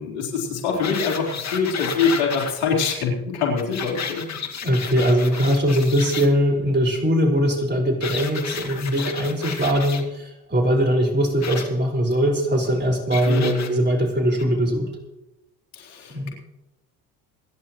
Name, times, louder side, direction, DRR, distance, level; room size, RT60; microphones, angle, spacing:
voice 1, 0.0-4.3 13.3-13.8 15.7-16.3, left 5 dB, 80° left, -1 dB, 4.3 m, -24 dB
sound 1, 0.8-2.5 3.6-6.3 8.0-10.0 11.4-11.6 13.1-13.7 14.4-14.5, left 7 dB, 35° left, 2.3 m, -32 dB
voice 2, 4.6-14.9 16.1-16.3, equal, 25° right, 0 dB, 5.2 m, -21 dB
28.0 x 11.0 x 3.2 m, 0.94 s
hypercardioid pair, 75°, 45 cm